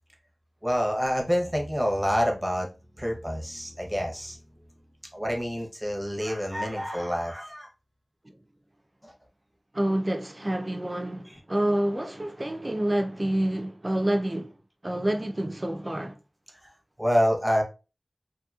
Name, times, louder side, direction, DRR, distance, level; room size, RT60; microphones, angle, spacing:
voice 1, 0.6-2.7 3.0-4.4 5.1-7.7 9.0-9.1 16.6-16.7 17.0-17.6, equal, 5° right, 0.8 m, -27 dB
voice 2, 9.7-14.5 14.8-16.2, right 1 dB, 30° right, 0.4 m, -28 dB
2.8 x 2.6 x 2.3 m
wide cardioid pair, 65°, 0 cm